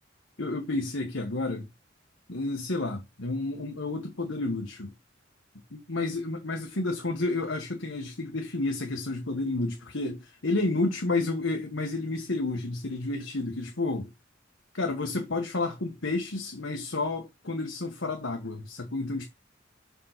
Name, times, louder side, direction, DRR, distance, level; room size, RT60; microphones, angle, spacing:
voice 1, 0.4-1.7 2.3-4.9 5.7-14.1 14.7-19.3, left 2 dB, 75° left, 1.5 m, -30 dB
5.8 x 5.4 x 6.6 m
head